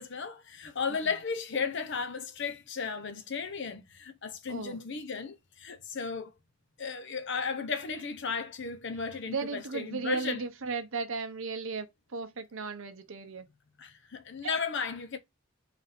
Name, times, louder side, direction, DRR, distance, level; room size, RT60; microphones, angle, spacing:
voice 1, 0.0-6.3 6.8-10.4 13.8-15.2, left 5 dB, 55° left, 0.7 m, -35 dB
voice 2, 4.5-4.8 9.3-13.5 14.4-14.6, right 4 dB, 65° right, 0.8 m, -36 dB
4.1 x 2.6 x 4.1 m
head